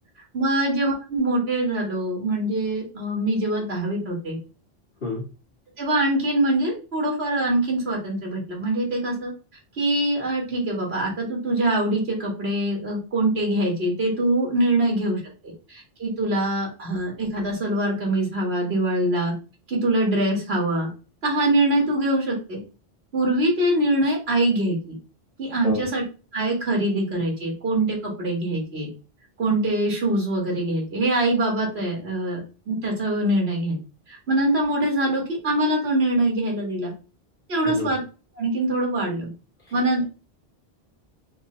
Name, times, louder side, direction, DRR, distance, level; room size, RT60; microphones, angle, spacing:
voice 1, 0.3-4.4 5.8-9.3 9.8-15.2 15.7-19.3 19.7-20.9 21.2-22.6 23.1-25.0 25.4-26.0 26.3-28.9 29.4-32.4 32.7-33.8 34.1-36.9 37.5-38.0 38.4-39.3 39.7-40.0, right 1 dB, 75° right, -1 dB, 2.0 m, -23 dB
voice 2, 5.0-5.3 25.6-25.8 37.6-37.9 39.6-39.7, left 4 dB, 80° left, -7 dB, 2.1 m, -29 dB
6.1 x 2.2 x 3.8 m, 0.34 s
omnidirectional pair, 1.1 m